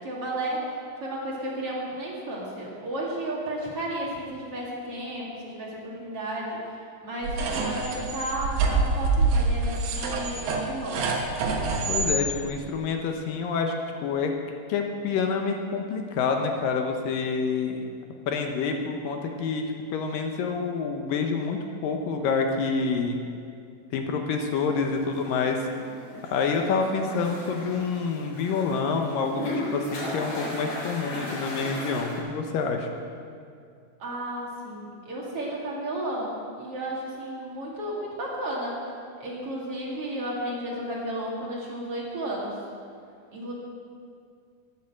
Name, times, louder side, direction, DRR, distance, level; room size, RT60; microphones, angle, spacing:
voice 1, 0.0-11.1 34.0-38.8 39.2-42.6 43.3-43.5, right 1 dB, 45° right, -4 dB, 2.7 m, -33 dB
sound 1, 7.2-12.1, right 3 dB, 75° right, 3.1 m, -26 dB
voice 2, 11.9-13.8 14.0-14.4 14.7-17.9 18.3-23.2 23.9-25.7 26.3-32.9, left 5 dB, 75° left, 3 dB, 2.5 m, -27 dB
sound 2, 24.7-32.2, equal, 60° left, 5.6 m, -36 dB
12.0 x 10.5 x 7.6 m, 2.3 s
omnidirectional pair, 4.3 m